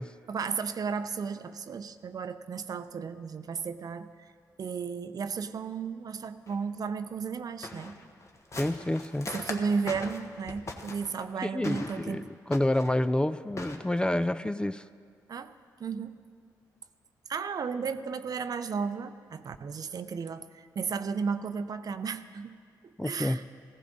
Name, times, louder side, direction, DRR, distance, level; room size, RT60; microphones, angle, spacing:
voice 1, 0.3-4.3 4.6-8.0 9.3-12.2 15.3-15.5 15.8-16.2 17.3-22.6 22.8-23.4, right 5 dB, 55° right, 11 dB, 0.6 m, -34 dB
sound 1, 6.5-6.6 7.1-7.2 7.6-11.2 11.6-12.1 12.5-13.0 13.5-13.8, left 2 dB, 40° left, 1.3 m, -40 dB
voice 2, 8.6-9.3 11.4-14.9 23.0-23.4, left 1 dB, 10° left, 13 dB, 0.4 m, -28 dB
15.0 x 14.0 x 3.9 m, 2.1 s
supercardioid pair, 60°, 8 cm